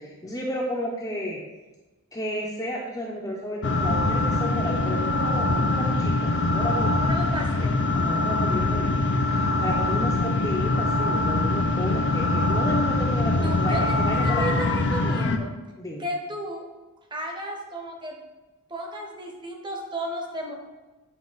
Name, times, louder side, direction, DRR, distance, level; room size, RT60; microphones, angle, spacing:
voice 1, 0.0-1.4 2.1-6.9 7.9-14.6 15.8-16.1, equal, 15° left, -5 dB, 0.7 m, -32 dB
sound 1, 3.6-15.4, left 2 dB, 55° left, 0.5 m, -23 dB
voice 2, 7.1-7.8 13.4-13.9 14.2-15.6 16.0-16.6 17.1-18.2 18.7-20.5, right 1 dB, 20° right, 1 dB, 1.0 m, -33 dB
8.5 x 3.9 x 4.0 m, 1.1 s
head